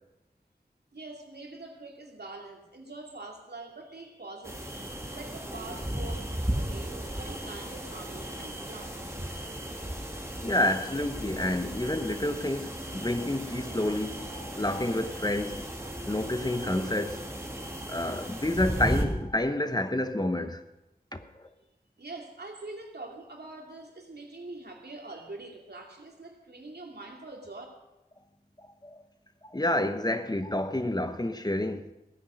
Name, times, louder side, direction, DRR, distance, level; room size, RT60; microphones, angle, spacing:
voice 1, 0.9-4.9 5.1-8.9 22.0-27.7, right 2 dB, 85° right, 2.5 m, -44 dB
sound 1, 4.4-19.0, right 1 dB, 15° right, 2.4 m, -36 dB
voice 2, 10.4-15.7 16.1-17.2 17.9-20.6 21.1-21.5 28.8-29.0 29.4-31.9, left 1 dB, 25° left, 1.0 m, -29 dB
16.5 x 9.4 x 6.3 m
wide cardioid pair, 50°, 16 cm